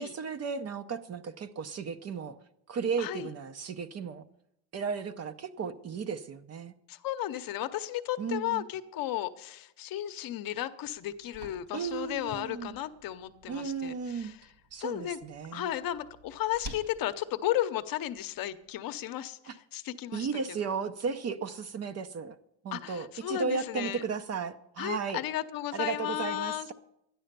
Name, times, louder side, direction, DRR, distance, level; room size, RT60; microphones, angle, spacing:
voice 1, 0.0-2.4 2.7-4.2 4.7-6.7 8.2-8.7 11.7-12.7 13.5-14.3 14.7-15.7 19.5-19.6 20.1-22.4 22.6-25.2 25.7-26.7, right 5 dB, 35° right, 11 dB, 0.7 m, -35 dB
voice 2, 3.0-3.3 6.9-14.5 14.8-15.2 15.5-20.7 22.7-24.0 24.8-26.7, left 13 dB, 50° left, 10 dB, 0.8 m, -34 dB
sound 1, 10.8-18.8, right 1 dB, 55° right, 2.3 m, -52 dB
12.5 x 10.5 x 6.7 m, 0.79 s
cardioid pair, 150°, 44 cm